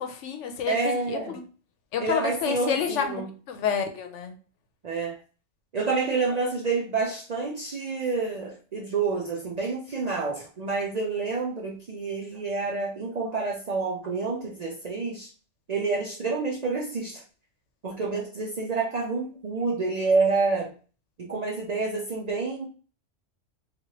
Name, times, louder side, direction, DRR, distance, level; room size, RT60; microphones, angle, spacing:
voice 1, 0.0-1.5 1.9-3.2 3.5-4.3, left 7 dB, 85° left, 6 dB, 0.9 m, -29 dB
voice 2, 0.7-1.3 2.0-3.3 4.8-5.2 5.7-15.3 15.7-17.2 17.8-20.7 21.2-22.7, right 4 dB, 55° right, -2 dB, 0.4 m, -28 dB
3.0 x 2.4 x 2.8 m, 0.38 s
omnidirectional pair, 1.2 m